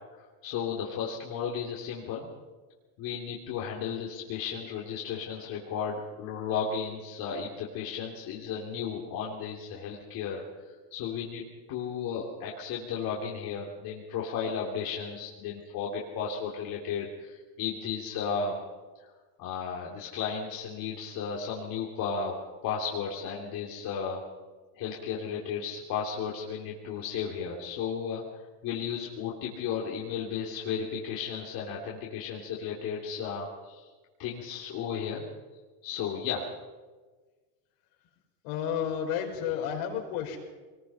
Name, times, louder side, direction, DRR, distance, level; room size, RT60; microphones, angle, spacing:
voice 1, 0.4-2.3 3.0-10.4 10.9-11.4 11.7-18.6 19.0-19.1 19.4-24.2 24.8-28.2 28.6-33.9 34.2-35.2 35.8-36.4 39.4-39.6, left 6 dB, 50° left, -3 dB, 3.3 m, -34 dB
voice 2, 38.4-40.4, left 8 dB, 65° left, 2 dB, 5.5 m, -31 dB
23.0 x 20.5 x 5.7 m, 1.3 s
supercardioid pair, 140°, 46 cm